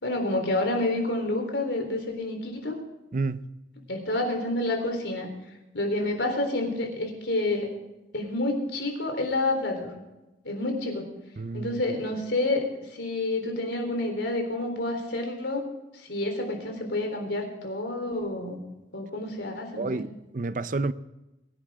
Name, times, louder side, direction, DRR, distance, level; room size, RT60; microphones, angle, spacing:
voice 1, 0.0-2.7 3.9-5.3 5.7-7.7 8.1-9.9 10.4-11.0 11.5-12.6 12.9-15.6 16.0-18.6 18.9-20.0, left 2 dB, 75° left, 3.8 m, -29 dB
voice 2, 3.1-3.5 11.4-11.8 19.8-20.9, right 3 dB, 45° right, 0.6 m, -30 dB
22.5 x 11.0 x 3.7 m
head